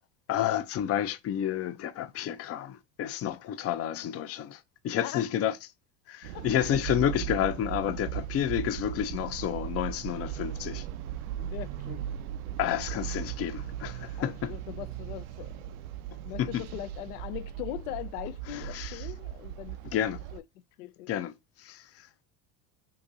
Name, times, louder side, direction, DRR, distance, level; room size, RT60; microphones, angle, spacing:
voice 1, 0.3-5.5 6.1-10.8 12.6-14.5 16.4-16.6 18.5-19.0 19.9-20.2 21.1-21.3 21.6-21.8, left 10 dB, 35° left, 0.4 m, -30 dB
voice 2, 5.0-5.3 6.3-6.8 8.5-8.6 11.4-12.1 14.2-15.8 16.2-20.4 20.8-21.1, left 14 dB, 85° left, 0.6 m, -41 dB
sound 1, 6.2-20.4, right 11 dB, 80° right, 0.5 m, -38 dB
2.9 x 2.6 x 3.8 m
hypercardioid pair, 85°, 45 cm